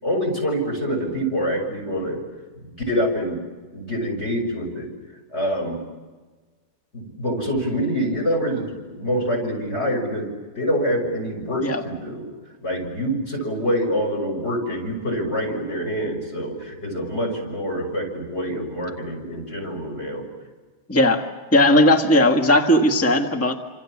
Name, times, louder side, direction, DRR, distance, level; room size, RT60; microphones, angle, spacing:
voice 1, 0.0-2.2 2.5-3.4 3.7-4.9 5.3-5.8 6.9-10.3 10.5-12.3 12.6-20.3, equal, 30° left, 2 dB, 6.5 m, -26 dB
voice 2, 20.9-21.2 21.5-23.6, left 1 dB, 10° left, 4 dB, 1.5 m, -17 dB
29.0 x 27.0 x 7.3 m, 1.3 s
omnidirectional pair, 2.2 m